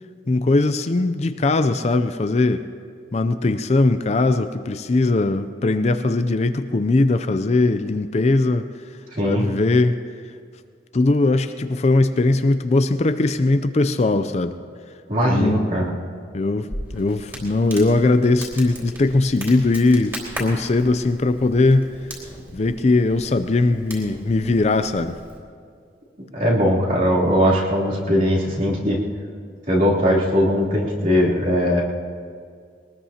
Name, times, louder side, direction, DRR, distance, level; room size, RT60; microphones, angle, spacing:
voice 1, 0.3-2.6 3.1-8.7 9.2-10.0 10.9-14.6 15.3-15.7 16.3-21.9 22.5-25.2, left 2 dB, 35° left, 10 dB, 0.4 m, -20 dB
voice 2, 9.1-9.4 15.1-15.9 26.3-29.0 29.7-31.8, equal, 45° right, -6 dB, 3.1 m, -19 dB
Crackle, 16.7-25.4, equal, 15° right, 3.7 m, -37 dB
22.5 x 19.5 x 2.8 m, 2.2 s
head